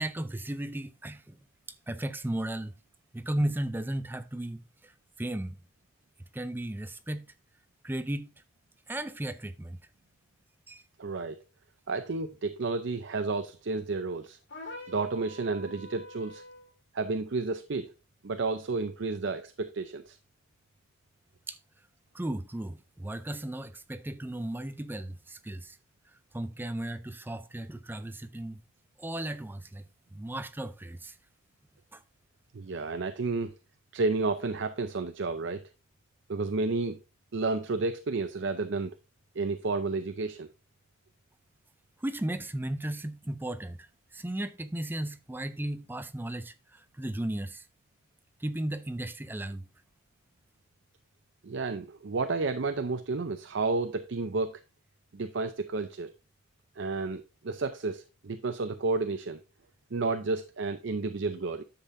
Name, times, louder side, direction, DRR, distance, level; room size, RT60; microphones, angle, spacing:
voice 1, 0.0-1.4 1.9-2.7 3.1-4.9 5.2-5.6 6.3-7.3 7.8-8.3 8.9-9.8 10.7-10.8 21.5-21.6 22.1-25.8 26.3-28.6 29.0-29.9 30.1-31.2 31.9-32.0 42.0-47.6 48.4-49.7, right 1 dB, 10° right, 0.4 m, -35 dB
voice 2, 11.0-11.4 11.9-14.4 14.9-16.4 16.9-17.9 18.2-20.2 32.5-33.5 33.9-35.6 36.3-37.0 37.3-38.9 39.4-40.5 51.4-54.6 55.1-56.1 56.8-59.4 59.9-61.6, right 3 dB, 60° right, 0.5 m, -31 dB
sound 1, 14.5-16.7, left 2 dB, 60° left, 2.0 m, -45 dB
10.0 x 7.4 x 2.6 m
head